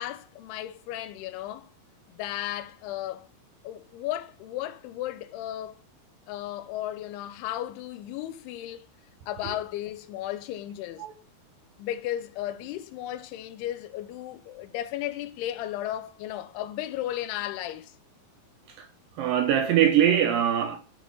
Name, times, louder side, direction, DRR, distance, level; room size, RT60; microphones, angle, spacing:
voice 1, 0.0-1.7 2.1-3.3 3.6-5.8 6.3-8.9 9.3-11.0 11.8-17.9, left 13 dB, 90° left, 2.6 m, -35 dB
voice 2, 19.2-20.8, right 10 dB, 75° right, 2.2 m, -22 dB
6.3 x 4.2 x 5.2 m
omnidirectional pair, 4.6 m